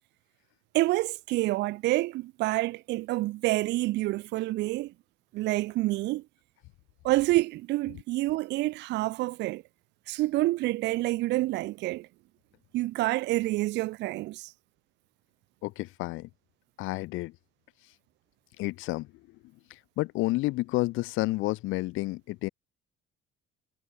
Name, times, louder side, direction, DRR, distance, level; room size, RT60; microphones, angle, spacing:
voice 1, 0.7-4.9 5.3-6.2 7.0-9.6 10.1-12.1 12.7-14.5, right 18 dB, 55° right, 0.4 m, -28 dB
voice 2, 15.6-16.3 16.8-17.3 18.6-19.1 19.7-22.5, left 20 dB, 70° left, 0.8 m, -30 dB
cardioid pair, 155°, 21 cm